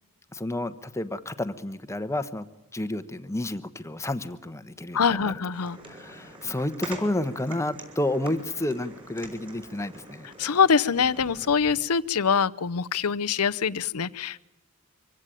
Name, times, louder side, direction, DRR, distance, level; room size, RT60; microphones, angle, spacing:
voice 1, 0.3-2.5 2.7-5.3 5.6-10.3, left 1 dB, 15° left, 11 dB, 1.0 m, -31 dB
voice 2, 4.9-5.8 10.4-14.4, left 6 dB, 85° left, 15 dB, 0.7 m, -24 dB
sound 1, 5.5-11.7, right 2 dB, 25° right, 5.4 m, -44 dB
25.0 x 16.5 x 9.0 m, 0.94 s
head